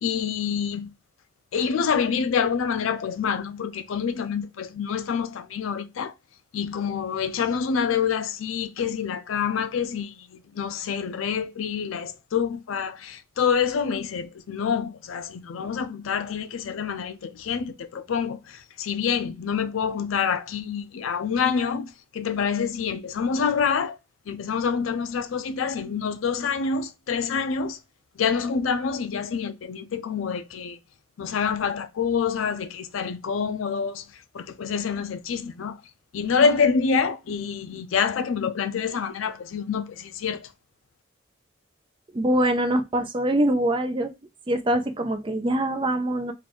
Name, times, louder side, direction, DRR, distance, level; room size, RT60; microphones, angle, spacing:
voice 1, 0.0-0.9 1.5-6.1 6.5-24.0 24.3-27.8 28.2-30.8 31.2-35.8 36.1-40.5, left 6 dB, 85° left, 0.4 m, -27 dB
voice 2, 42.1-44.1 44.5-46.3, right 1 dB, 25° right, 0.4 m, -23 dB
3.7 x 2.4 x 3.4 m
head